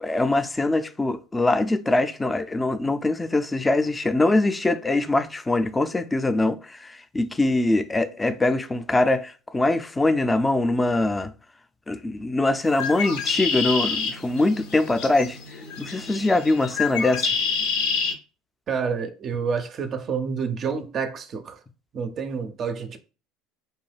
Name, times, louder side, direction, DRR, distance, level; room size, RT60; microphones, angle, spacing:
voice 1, 0.0-11.3 11.9-15.4 15.8-17.3, left 2 dB, 15° left, 0.4 m, -23 dB
Bird, 12.6-18.1, left 5 dB, 70° left, 0.6 m, -28 dB
voice 2, 18.7-21.6 21.9-23.0, right 6 dB, 45° right, 0.4 m, -28 dB
2.6 x 2.2 x 3.3 m
hypercardioid pair, 70°, 0 cm